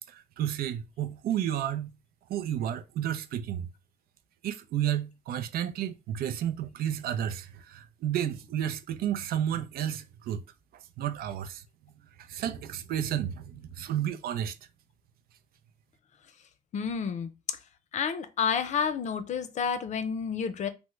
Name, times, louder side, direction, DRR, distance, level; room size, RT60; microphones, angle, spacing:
voice 1, 0.1-1.9 2.3-3.7 4.4-10.4 11.0-11.6 12.3-14.6, right 10 dB, 85° right, 0.4 m, -31 dB
voice 2, 16.7-17.6 17.9-20.7, left 6 dB, 50° left, 0.5 m, -30 dB
3.4 x 2.0 x 3.0 m
cardioid pair, 130°, 15 cm